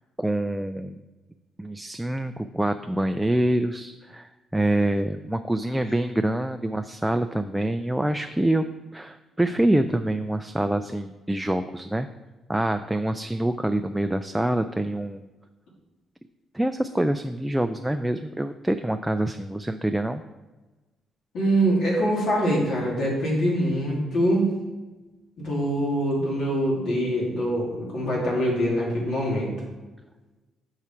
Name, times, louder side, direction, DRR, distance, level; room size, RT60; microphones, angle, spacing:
voice 1, 0.2-0.9 1.6-8.7 8.9-12.1 12.5-15.3 16.5-20.2, right 1 dB, 5° right, 8 dB, 0.3 m, -26 dB
voice 2, 21.3-24.5 25.4-29.5, equal, 70° left, -4 dB, 2.7 m, -24 dB
8.1 x 4.8 x 4.4 m, 1.2 s
cardioid pair, 90°, 0 cm